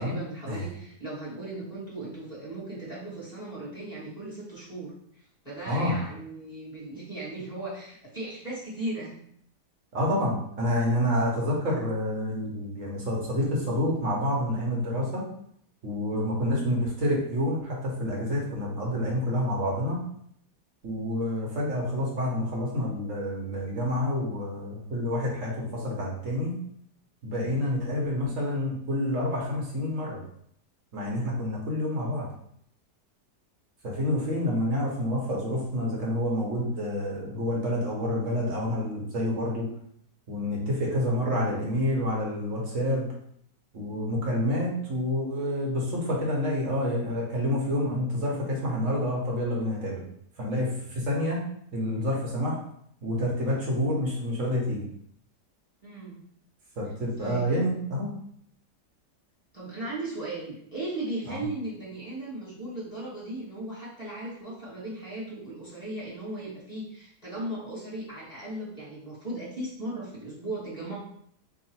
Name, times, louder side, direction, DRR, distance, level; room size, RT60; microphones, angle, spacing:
voice 1, 0.0-4.9 5.4-9.1 55.8-56.2 57.2-57.5 59.5-71.0, right 2 dB, 25° left, -8 dB, 1.8 m, -37 dB
voice 2, 9.9-15.2 15.8-20.0 20.8-26.5 27.2-30.2 30.9-32.2 33.8-39.7 40.3-43.1 43.7-50.0 50.4-51.4 51.7-52.6 53.0-54.8 56.8-58.1 61.3-61.4, left 1 dB, 55° right, -3 dB, 1.3 m, -28 dB
3.8 x 2.4 x 4.2 m, 0.67 s
omnidirectional pair, 1.8 m